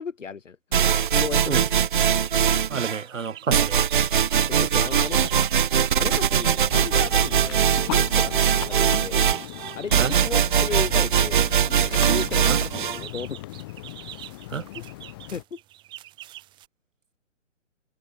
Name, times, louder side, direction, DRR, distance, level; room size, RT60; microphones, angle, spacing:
voice 1, 0.0-1.7 4.5-5.5 6.0-9.2 9.8-13.4 15.3-15.6, left 6 dB, 80° left, 7.2 m, -35 dB
sound 1, 0.7-3.0 3.5-13.0, right 8 dB, 40° right, 1.6 m, -21 dB
sound 2, 1.1-1.2 1.7-2.4 2.6-16.7, right 15 dB, 10° right, 7.4 m, -46 dB
voice 2, 2.7-3.8 10.0-10.1 12.5-12.6 14.5-14.6, right 5 dB, 90° right, 6.0 m, -28 dB
sound 3, 6.7-15.4, left 19 dB, 20° left, 2.2 m, -39 dB
hypercardioid pair, 175°, 37 cm